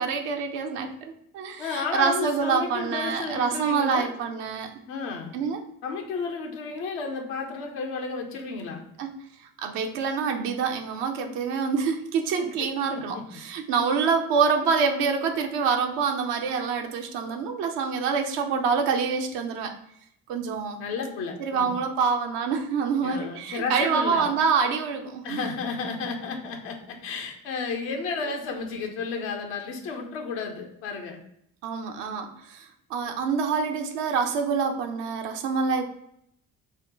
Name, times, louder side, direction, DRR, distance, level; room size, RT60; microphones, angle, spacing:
voice 1, 0.0-4.7 5.3-5.6 9.0-9.1 9.6-19.7 20.3-20.8 21.4-25.5 31.6-35.8, right 5 dB, 70° right, 5 dB, 0.7 m, -26 dB
voice 2, 1.6-4.1 4.9-5.3 5.8-8.8 12.4-12.7 12.9-13.2 20.8-21.7 23.0-24.3 25.2-31.2, left 4 dB, 70° left, 3 dB, 0.8 m, -32 dB
5.1 x 2.2 x 3.7 m, 0.73 s
figure-of-eight pair, 40°, 44 cm